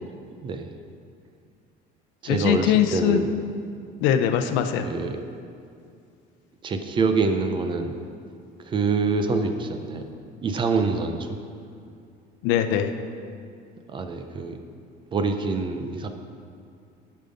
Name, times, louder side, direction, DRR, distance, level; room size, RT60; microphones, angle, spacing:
voice 1, 0.4-0.7 2.2-3.3 4.8-5.2 6.6-8.0 8.6-10.0 10.4-11.4 13.9-14.6 15.1-16.1, right 4 dB, 25° right, 6 dB, 0.5 m, -25 dB
voice 2, 2.3-3.2 4.0-4.9 12.4-12.9, left 9 dB, 85° left, 8 dB, 0.6 m, -21 dB
10.5 x 5.6 x 5.1 m, 2.4 s
cardioid pair, 165°, 19 cm